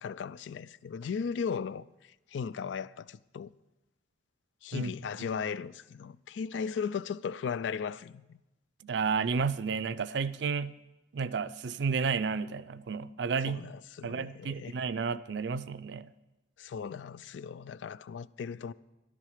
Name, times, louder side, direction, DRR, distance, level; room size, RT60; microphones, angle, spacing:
voice 1, 0.0-3.5 4.6-8.4 13.5-14.7 16.6-18.7, left 6 dB, 90° left, 0.4 m, -37 dB
voice 2, 8.8-10.8 11.1-13.6 14.0-16.1, right 5 dB, 70° right, 0.4 m, -31 dB
14.0 x 11.5 x 5.0 m
head